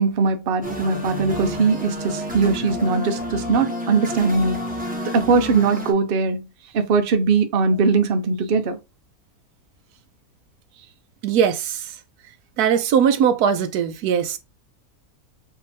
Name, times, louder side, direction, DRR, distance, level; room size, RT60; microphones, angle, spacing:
voice 1, 0.0-4.6 5.1-6.5 6.7-8.8, right 4 dB, 50° right, 0.8 m, -20 dB
sound 1, 0.6-5.9, left 1 dB, 5° right, 0.9 m, -29 dB
voice 2, 11.2-11.8 12.6-14.4, right 8 dB, 85° right, 1.2 m, -20 dB
4.5 x 3.0 x 3.5 m
omnidirectional pair, 1.6 m